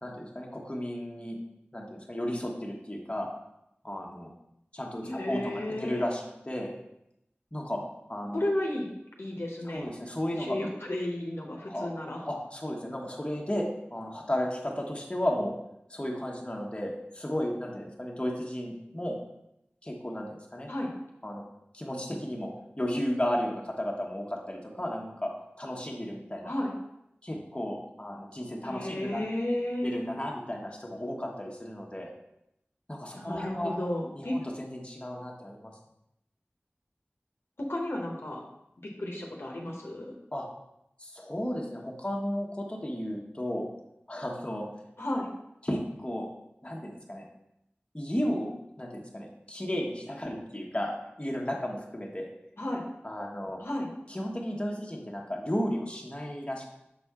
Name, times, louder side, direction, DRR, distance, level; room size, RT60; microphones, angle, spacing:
voice 1, 0.0-1.4 1.7-3.3 3.8-4.3 4.7-6.7 7.5-7.8 8.1-8.4 9.7-10.6 11.7-11.9 12.3-13.6 13.9-15.5 15.9-19.2 19.8-20.7 21.2-21.4 21.7-22.5 22.8-25.3 25.6-26.5 27.2-29.2 29.8-32.1 32.9-33.7 34.1-35.7 40.3-40.5 41.0-43.7 44.1-44.7 45.6-46.3 46.6-47.3 47.9-48.5 48.8-50.9 51.2-52.3 53.0-53.6 54.1-56.6, equal, 25° left, -1 dB, 1.1 m, -34 dB
voice 2, 5.0-6.1 8.3-8.9 9.2-9.9 10.4-12.2 20.7-20.9 26.4-26.7 28.6-30.1 33.1-34.4 37.6-38.4 38.8-40.1 45.0-45.3 52.6-52.8 53.6-53.9, left 1 dB, 85° left, -1 dB, 1.0 m, -33 dB
6.7 x 4.3 x 3.6 m, 0.84 s
wide cardioid pair, 45°, 4 cm